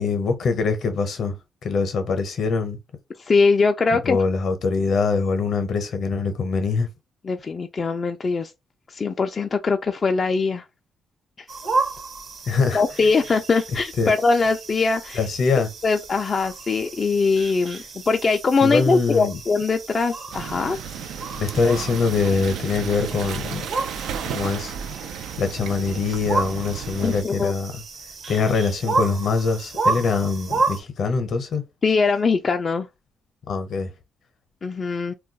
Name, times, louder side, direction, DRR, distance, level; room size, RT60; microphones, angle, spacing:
voice 1, 0.0-2.8 3.9-6.9 12.5-12.8 14.0-14.1 15.1-15.7 18.6-19.4 21.3-23.6 24.3-24.7 25.4-27.7 28.3-31.6 33.5-33.9, left 4 dB, 60° left, 0.7 m, -23 dB
voice 2, 3.2-4.2 7.2-8.5 8.9-10.6 12.7-15.2 15.8-20.8 27.0-27.5 31.8-32.9 34.6-35.1, left 4 dB, 40° left, 0.3 m, -21 dB
sound 1, 11.5-30.8, right 3 dB, 50° right, 0.8 m, -31 dB
sound 2, 20.3-27.2, right 8 dB, 85° right, 0.4 m, -33 dB
2.3 x 2.2 x 3.9 m
cardioid pair, 100°, 0 cm